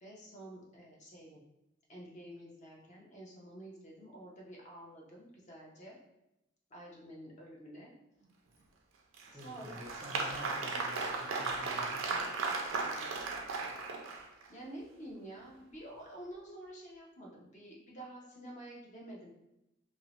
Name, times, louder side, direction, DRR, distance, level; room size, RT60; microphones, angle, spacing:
voice 1, 0.0-1.4 1.9-6.0 6.7-7.9 9.3-9.9 12.1-13.5 14.5-19.3, right 1 dB, 40° left, -2 dB, 0.6 m, -50 dB
Applause, 9.1-14.5, right 3 dB, 90° right, 0.4 m, -36 dB
voice 2, 9.3-12.1, equal, 15° right, -3 dB, 0.4 m, -49 dB
2.6 x 2.0 x 2.9 m, 0.88 s
head